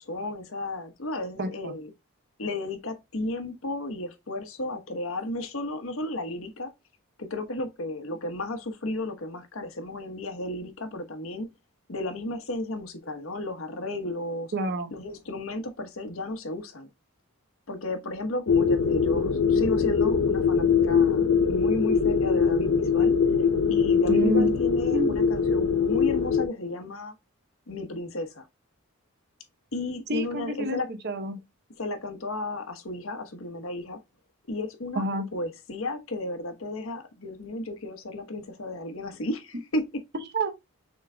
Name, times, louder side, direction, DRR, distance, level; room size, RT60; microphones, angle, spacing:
voice 1, 0.0-1.9 2.4-6.7 7.2-11.5 11.9-14.5 14.9-16.9 17.7-23.2 23.7-27.1 27.7-28.5 29.7-30.9 31.8-34.0 34.5-40.0, left 1 dB, 70° left, 1.1 m, -33 dB
voice 2, 1.4-1.7 14.5-14.9 24.1-24.6 24.9-25.2 30.1-30.8 31.0-31.4 35.0-35.3 40.1-40.5, right 2 dB, 50° right, 0.8 m, -28 dB
sound 1, 18.5-26.5, left 6 dB, 85° left, 0.7 m, -22 dB
6.2 x 3.8 x 2.2 m
head